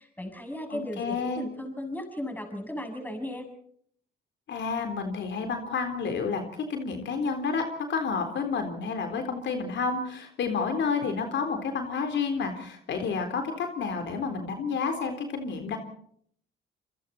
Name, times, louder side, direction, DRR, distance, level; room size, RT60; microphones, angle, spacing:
voice 1, 0.0-3.5, left 1 dB, 10° left, 4 dB, 7.5 m, -36 dB
voice 2, 0.7-1.4 4.5-6.4 6.7-7.6 7.9-15.8, left 5 dB, 65° left, 5 dB, 3.9 m, -30 dB
27.5 x 24.5 x 4.3 m, 0.64 s
cardioid pair, 90°, 20 cm